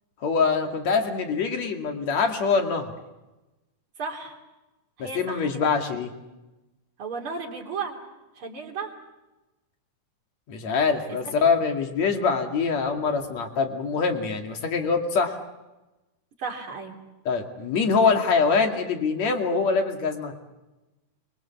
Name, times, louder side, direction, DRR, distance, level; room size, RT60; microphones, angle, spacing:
voice 1, 0.2-2.9 5.0-6.1 10.5-15.4 17.3-20.3, left 5 dB, 55° left, 4 dB, 3.5 m, -24 dB
voice 2, 4.0-4.4 5.0-5.4 7.0-8.0 8.4-8.9 11.1-11.2 16.4-17.0, right 5 dB, 40° right, 1 dB, 4.0 m, -34 dB
27.5 x 24.5 x 7.4 m, 1.0 s
omnidirectional pair, 3.8 m